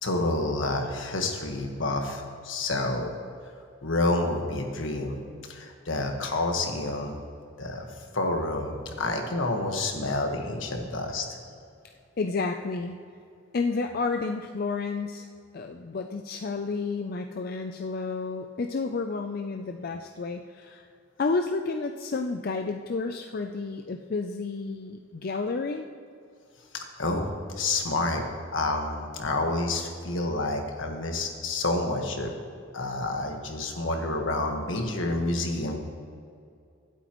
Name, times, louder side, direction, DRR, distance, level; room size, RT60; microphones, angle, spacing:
voice 1, 0.0-3.1 3.8-5.2 5.4-7.2 7.6-7.9 8.1-11.2 26.7-27.3 27.6-28.2 28.5-32.3 32.7-35.8, left 2 dB, 75° left, 3 dB, 1.5 m, -29 dB
voice 2, 12.2-13.0 13.5-15.3 15.5-20.8 21.2-25.9, left 4 dB, 50° left, 5 dB, 0.4 m, -31 dB
24.0 x 8.2 x 3.1 m, 2.4 s
head